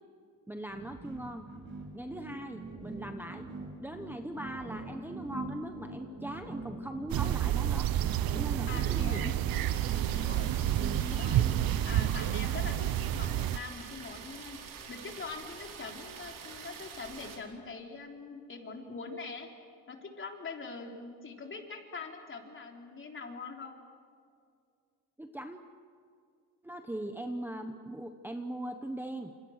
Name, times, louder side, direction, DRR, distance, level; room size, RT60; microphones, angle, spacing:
voice 1, 0.5-1.4 1.9-3.5 3.8-7.9 8.3-9.3 25.2-25.6 26.6-29.3, right 1 dB, 5° right, 6 dB, 1.0 m, -40 dB
sound 1, 0.7-13.2, right 2 dB, 30° right, 7.1 m, -43 dB
sound 2, 7.1-13.6, right 12 dB, 85° right, 0.9 m, -29 dB
voice 2, 8.6-9.4 10.1-10.5 11.2-11.5 11.8-14.6 14.9-19.5 19.9-23.7, left 4 dB, 35° left, 3 dB, 3.5 m, -43 dB
sound 3, 9.5-17.4, right 6 dB, 65° right, 4.5 m, -46 dB
29.5 x 28.0 x 6.5 m, 2.3 s
cardioid pair, 160°, 35 cm